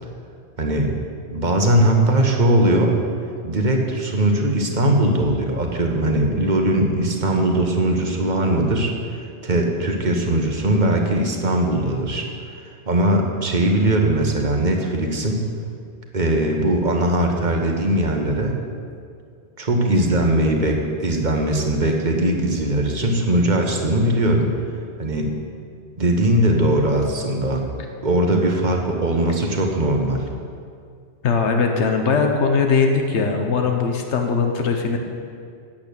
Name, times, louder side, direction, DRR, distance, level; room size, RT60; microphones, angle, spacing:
voice 1, 0.6-0.9 1.3-2.9 3.4-12.3 12.6-15.4 16.1-18.6 19.6-24.5 25.0-25.3 26.0-27.6 28.0-30.2, right 1 dB, 45° right, 2 dB, 1.3 m, -20 dB
voice 2, 31.2-35.0, left 5 dB, 85° left, 4 dB, 1.2 m, -20 dB
8.7 x 8.3 x 6.9 m, 2.3 s
omnidirectional pair, 1.1 m